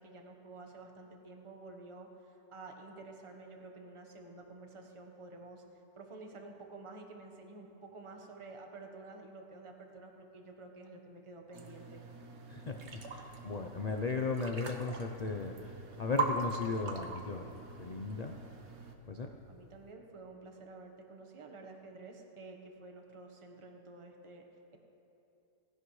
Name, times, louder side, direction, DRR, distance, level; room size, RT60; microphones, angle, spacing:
voice 1, 0.0-5.6 5.9-12.0 19.5-24.4, right 3 dB, 20° right, 2 dB, 1.0 m, -50 dB
sound 1, 11.5-18.9, right 3 dB, 50° right, 1.2 m, -41 dB
voice 2, 12.5-15.7 16.0-18.3 19.1-19.3, left 4 dB, 70° left, 3 dB, 0.3 m, -36 dB
17.5 x 16.5 x 3.2 m, 2.9 s
omnidirectional pair, 1.7 m